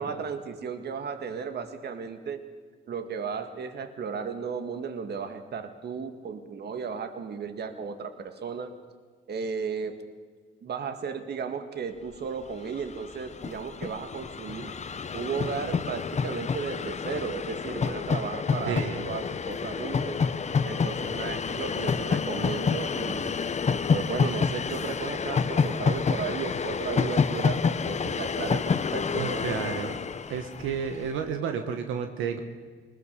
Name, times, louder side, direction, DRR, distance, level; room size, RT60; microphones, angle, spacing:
voice 1, 0.0-2.4 2.9-8.7 9.3-10.0 10.6-14.9 15.1-20.2 20.7-23.3 23.9-29.4, right 6 dB, 55° right, 8 dB, 1.9 m, -35 dB
Train, 12.4-12.5 12.7-31.1, left 5 dB, 35° left, 0.9 m, -28 dB
voice 2, 18.7-19.1 29.2-30.0 30.3-32.4, right 7 dB, 90° right, 6 dB, 1.4 m, -31 dB
21.0 x 20.0 x 6.9 m, 1.5 s
cardioid pair, 90°, 20 cm